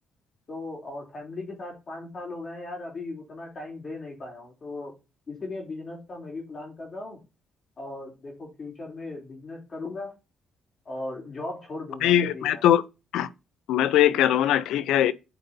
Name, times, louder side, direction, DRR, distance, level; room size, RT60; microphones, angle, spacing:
voice 1, 0.5-4.9 5.3-7.2 7.8-10.1 10.8-12.6, left 2 dB, 40° left, 3.4 m, -37 dB
voice 2, 12.0-12.8 13.1-13.3 13.7-15.1, left 11 dB, 85° left, 0.5 m, -21 dB
8.7 x 5.2 x 2.8 m
cardioid pair, 90°, 0 cm